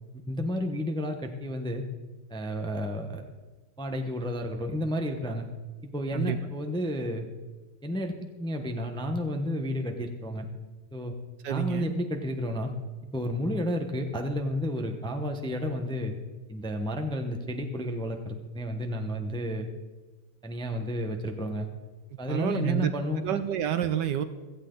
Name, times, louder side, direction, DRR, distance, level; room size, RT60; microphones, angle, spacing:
voice 1, 0.3-1.8 2.3-3.2 3.8-5.4 5.9-7.3 7.8-8.1 8.4-10.5 10.9-11.1 11.5-12.7 13.1-16.2 16.5-19.7 20.4-21.7 22.2-23.2, equal, 5° left, 4 dB, 0.7 m, -31 dB
voice 2, 11.4-11.9 22.3-22.9 23.2-24.2, right 9 dB, 70° right, 10 dB, 1.3 m, -28 dB
16.5 x 14.5 x 3.9 m, 1.3 s
omnidirectional pair, 2.1 m